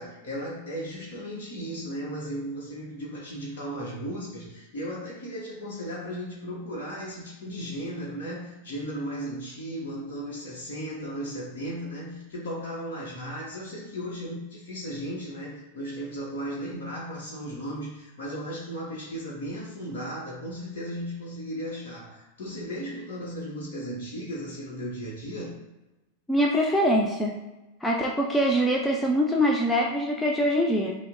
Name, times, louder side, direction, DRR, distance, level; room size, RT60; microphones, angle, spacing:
voice 1, 0.0-25.5, equal, 55° left, -5 dB, 1.1 m, -36 dB
voice 2, 26.3-27.4 27.8-30.9, equal, 10° left, 0 dB, 0.5 m, -23 dB
5.6 x 2.1 x 3.8 m, 1.1 s
figure-of-eight pair, 90°, 0 cm